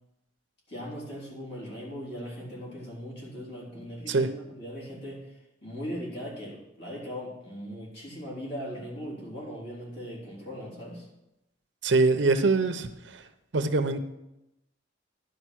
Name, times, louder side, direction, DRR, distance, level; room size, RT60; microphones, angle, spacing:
voice 1, 0.7-4.3 4.6-5.2 5.6-11.1, equal, 60° left, -5 dB, 3.6 m, -39 dB
voice 2, 11.8-13.2 13.5-14.0, right 3 dB, 80° right, 9 dB, 0.7 m, -24 dB
11.0 x 5.1 x 6.2 m, 0.89 s
head